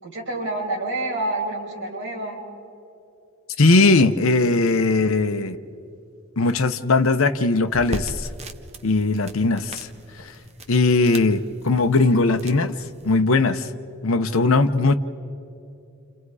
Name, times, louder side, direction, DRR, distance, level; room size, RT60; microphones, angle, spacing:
voice 1, 0.0-2.4, right 2 dB, 60° right, -3 dB, 5.8 m, -28 dB
voice 2, 3.6-5.6 6.4-8.3 8.8-9.9 10.2-10.3 10.7-12.8 13.1-13.7 14.0-14.9, left 3 dB, 75° left, 7 dB, 0.9 m, -19 dB
sound 1, 7.7-13.2, right 1 dB, 30° right, 1.1 m, -38 dB
29.5 x 29.0 x 4.9 m, 2.7 s
head